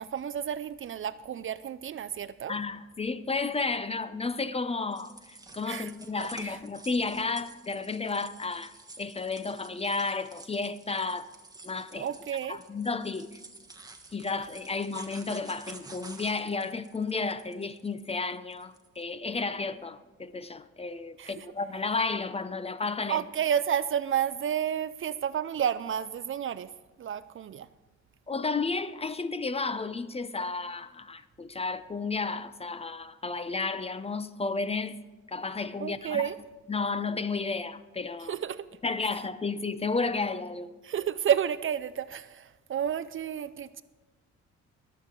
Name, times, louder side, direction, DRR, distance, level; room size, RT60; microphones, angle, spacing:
voice 1, 0.0-2.5 5.7-5.9 6.2-6.6 12.0-12.6 21.2-21.5 23.1-26.7 27.0-27.7 35.8-36.4 38.3-38.7 40.8-43.8, right 9 dB, 45° right, 0.4 m, -31 dB
voice 2, 2.5-11.3 11.6-12.1 12.5-13.4 14.1-23.2 28.3-34.9 35.3-36.2 36.7-38.4 38.8-40.7, left 4 dB, 20° left, 0.5 m, -32 dB
sound 1, 4.9-19.0, right 2 dB, 10° right, 1.2 m, -50 dB
21.5 x 7.6 x 3.8 m
cardioid pair, 90°, 30 cm